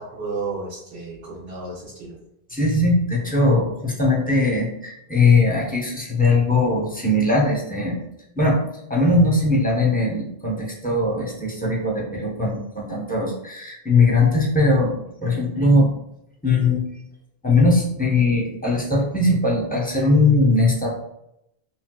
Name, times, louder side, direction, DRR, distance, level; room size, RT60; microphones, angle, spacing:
voice 1, 0.1-2.2, right 4 dB, 80° right, -7 dB, 1.1 m, -32 dB
voice 2, 2.5-8.0 8.4-8.6 8.9-15.9 16.4-16.9 17.4-20.9, left 2 dB, 10° left, -3 dB, 0.5 m, -20 dB
3.8 x 2.2 x 2.2 m, 0.81 s
omnidirectional pair, 1.0 m